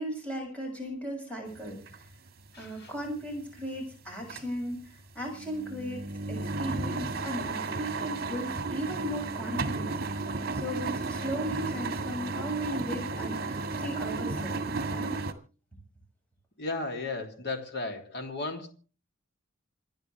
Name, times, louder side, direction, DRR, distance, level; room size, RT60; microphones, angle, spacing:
voice 1, 0.0-2.1 2.6-14.6 14.9-15.1, equal, 5° left, 1 dB, 6.9 m, -37 dB
sound 1, 1.5-3.9 4.2-4.6 5.0-15.3, right 3 dB, 45° right, 1.9 m, -33 dB
voice 2, 2.5-2.9 16.6-18.7, left 3 dB, 50° left, 3 dB, 3.1 m, -35 dB
28.0 x 10.5 x 3.4 m, 0.36 s
head